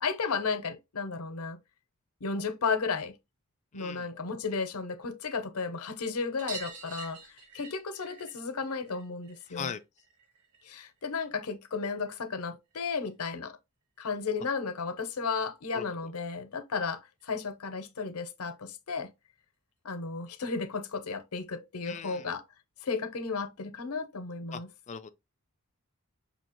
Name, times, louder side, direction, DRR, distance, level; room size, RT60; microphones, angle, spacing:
voice 1, 0.0-1.6 2.2-3.2 3.7-7.2 7.5-9.8 10.6-13.6 14.0-19.1 19.8-22.4 22.8-24.7, left 4 dB, 80° left, 0.7 m, -34 dB
voice 2, 3.7-4.1 9.5-9.8 15.7-16.1 21.9-22.3 24.5-24.6 24.9-25.1, left 6 dB, 30° left, 0.4 m, -39 dB
sound 1, 6.4-11.5 11.8-12.9 14.3-14.4 14.6-14.7 15.0-15.1 16.4-16.5 16.8-16.9 17.2-17.3 18.5-18.6 19.4-19.5, right 4 dB, 90° right, 1.0 m, -48 dB
6.2 x 2.8 x 2.9 m
head